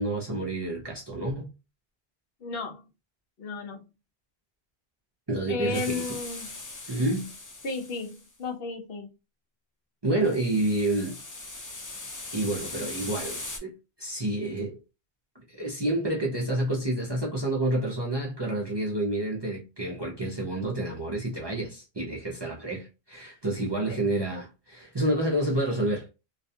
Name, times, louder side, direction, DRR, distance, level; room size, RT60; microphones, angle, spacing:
voice 1, 0.0-1.5 5.3-6.0 6.9-7.3 10.0-11.2 12.3-14.8 15.3-26.1, right 1 dB, 30° right, 0.5 m, -29 dB
voice 2, 2.4-2.8 3.4-3.9 5.5-6.5 7.6-9.1 23.9-24.0, left 3 dB, 70° left, 0.8 m, -33 dB
sound 1, 5.7-8.3 10.2-13.6, left 2 dB, 30° left, 0.3 m, -40 dB
2.4 x 2.2 x 2.7 m
omnidirectional pair, 1.1 m